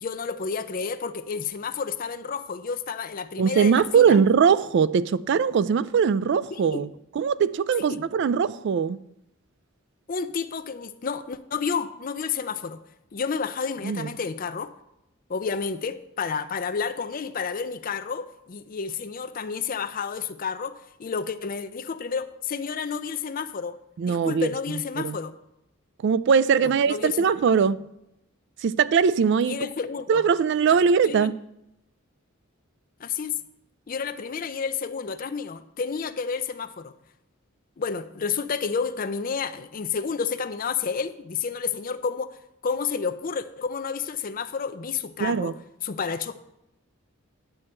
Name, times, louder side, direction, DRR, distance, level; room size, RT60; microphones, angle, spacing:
voice 1, 0.0-4.2 6.5-6.9 7.9-8.0 10.1-12.8 13.1-14.7 15.3-23.8 24.0-25.3 26.6-27.3 29.4-30.2 31.0-31.3 33.0-33.4 33.9-36.9 37.8-42.4 42.6-45.5 45.8-46.4, left 5 dB, 45° left, 0.5 m, -30 dB
voice 2, 3.4-6.9 7.1-9.0 13.8-14.1 24.0-24.5 25.0-25.2 26.0-27.8 28.6-29.7 30.1-31.4 45.2-45.5, right 6 dB, 55° right, 0.3 m, -21 dB
9.8 x 6.4 x 4.4 m
head